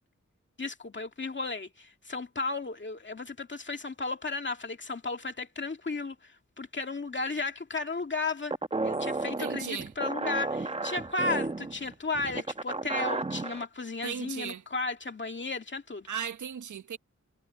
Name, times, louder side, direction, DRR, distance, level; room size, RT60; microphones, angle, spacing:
voice 1, 0.6-6.3 6.6-8.5 8.8-16.1, left 3 dB, 40° left, 2.1 m, -34 dB
sound 1, 8.5-13.6, right 3 dB, 20° right, 0.9 m, -33 dB
voice 2, 9.4-9.9 14.0-14.6 16.1-17.0, right 8 dB, 80° right, 0.8 m, -36 dB
wide cardioid pair, 125°, 29 cm